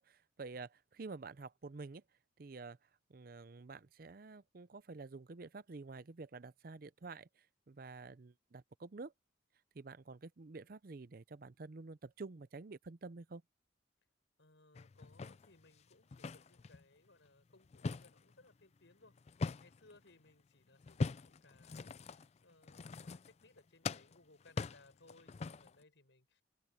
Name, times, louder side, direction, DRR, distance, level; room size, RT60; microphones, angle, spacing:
voice 1, 0.0-2.0 2.4-9.1 9.7-13.4, right 3 dB, 50° right, 0.5 m, -49 dB
voice 2, 14.4-26.4, left 2 dB, 75° left, 4.9 m, -65 dB
sound 1, 14.8-16.8 17.3-20.0 20.8-23.6 23.8-25.8, left 4 dB, 35° left, 0.3 m, -42 dB
open air
head